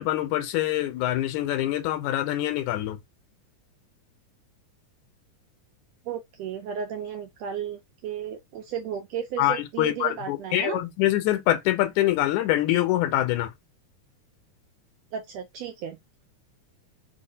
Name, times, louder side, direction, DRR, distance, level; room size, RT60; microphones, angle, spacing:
voice 1, 0.0-3.0 9.4-13.5, left 14 dB, 80° left, 2.0 m, -25 dB
voice 2, 6.1-10.8 15.1-16.0, right 8 dB, 85° right, 1.5 m, -34 dB
4.8 x 2.1 x 2.7 m
omnidirectional pair, 3.5 m